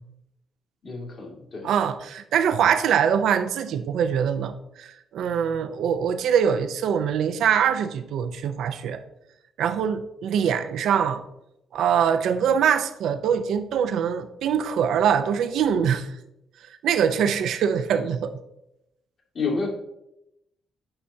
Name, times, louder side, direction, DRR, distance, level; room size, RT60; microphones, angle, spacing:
voice 1, 0.8-1.7 19.3-19.7, left 4 dB, 50° left, -1 dB, 1.9 m, -29 dB
voice 2, 1.6-9.0 9.6-11.2 11.7-16.1 16.8-18.3, right 8 dB, 75° right, 9 dB, 0.5 m, -23 dB
8.8 x 5.6 x 2.7 m, 0.84 s
cardioid pair, 90°, 0 cm